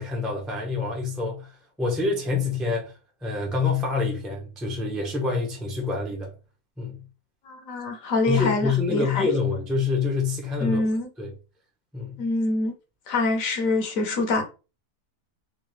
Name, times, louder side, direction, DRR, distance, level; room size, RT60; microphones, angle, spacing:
voice 1, 0.0-1.5 1.8-2.9 3.2-6.3 6.8-7.0 8.3-10.8 11.2-11.3 11.9-12.2, left 4 dB, ahead, 0.5 m, -26 dB
voice 2, 7.4-9.3 10.6-11.1 12.2-12.7 13.1-14.4, left 2 dB, 60° left, 1.1 m, -25 dB
3.7 x 2.5 x 3.1 m
omnidirectional pair, 1.7 m